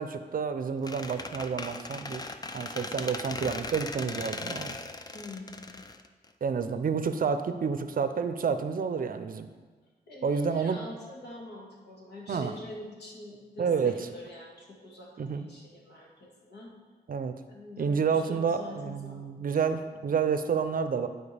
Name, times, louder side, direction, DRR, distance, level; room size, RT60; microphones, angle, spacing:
voice 1, 0.0-2.2 2.5-4.8 6.4-9.5 10.2-10.8 12.3-12.5 13.6-13.9 15.2-15.5 17.1-17.4 17.8-21.1, right 6 dB, 55° right, 10 dB, 0.5 m, -29 dB
Squeak, 0.8-6.6, left 3 dB, 20° left, 0.4 m, -38 dB
voice 2, 5.1-5.8 10.1-16.7 17.5-19.4, left 1 dB, 75° left, -2 dB, 1.8 m, -45 dB
11.0 x 4.6 x 3.4 m, 1.4 s
cardioid pair, 85°, 18 cm